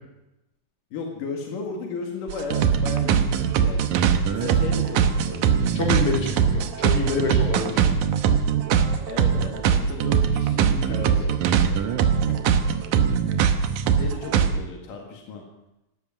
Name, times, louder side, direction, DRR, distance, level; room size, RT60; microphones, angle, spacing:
voice 1, 0.9-3.9 4.3-5.6 9.1-11.8 12.3-12.7 13.9-15.5, left 4 dB, 75° left, 1 dB, 3.5 m, -35 dB
sound 1, 2.3-14.5, right 8 dB, 70° right, 2.3 m, -21 dB
voice 2, 5.7-7.9 10.9-11.1, left 3 dB, 45° left, -2 dB, 4.6 m, -27 dB
18.0 x 13.0 x 6.0 m, 0.92 s
omnidirectional pair, 3.8 m